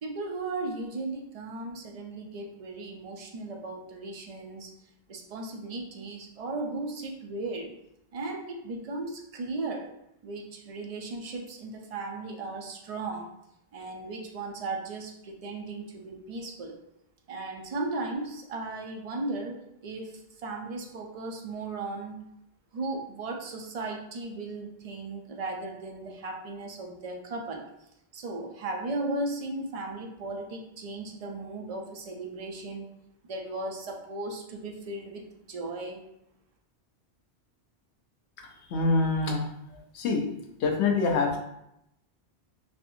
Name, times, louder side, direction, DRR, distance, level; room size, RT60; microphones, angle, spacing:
voice 1, 0.0-4.7 5.1-7.7 8.1-9.9 10.2-13.3 13.7-16.7 17.3-22.2 22.7-27.6 28.1-32.9 33.2-36.0, right 2 dB, 50° right, 1 dB, 0.4 m, -36 dB
voice 2, 38.7-39.5 39.9-40.2 40.6-41.4, left 3 dB, 85° left, 2 dB, 0.9 m, -25 dB
3.4 x 2.5 x 2.6 m, 0.81 s
omnidirectional pair, 1.1 m